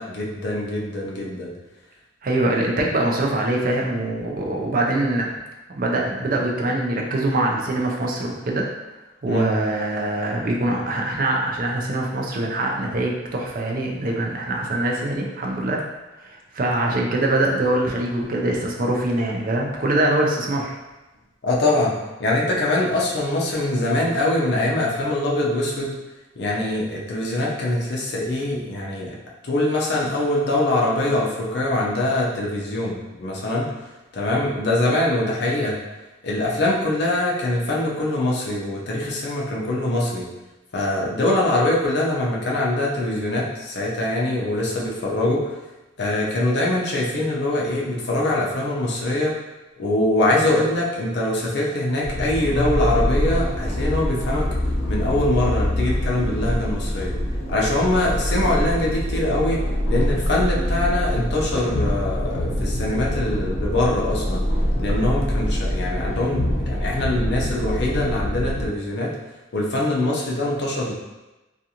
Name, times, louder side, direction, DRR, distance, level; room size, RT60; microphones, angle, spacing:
voice 1, 0.0-1.5 9.2-9.5 21.4-21.9 22.2-25.9 26.4-29.1 29.4-33.7 34.1-35.8 36.2-40.3 40.7-45.5 46.0-49.3 49.8-54.5 54.9-57.1 57.5-64.4 64.8-69.1 69.5-70.9, left 1 dB, 60° left, -4 dB, 0.5 m, -23 dB
voice 2, 2.2-5.4 5.7-8.7 9.2-15.8 16.2-20.8, right 1 dB, 45° right, -1 dB, 0.4 m, -23 dB
sound 1, 52.0-68.7, equal, 90° left, 0.8 m, -24 dB
2.5 x 2.4 x 2.8 m, 1.1 s
head